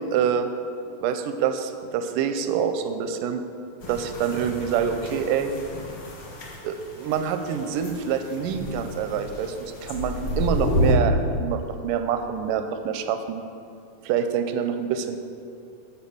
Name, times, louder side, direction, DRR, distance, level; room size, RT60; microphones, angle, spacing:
voice 1, 0.1-0.5 1.0-3.4 3.9-5.5 6.6-13.4 14.0-15.2, right 8 dB, 85° right, 8 dB, 2.2 m, -26 dB
sound 1, 3.8-10.9, left 1 dB, 55° left, 1.3 m, -30 dB
10.5 x 5.0 x 6.9 m, 2.6 s
omnidirectional pair, 3.8 m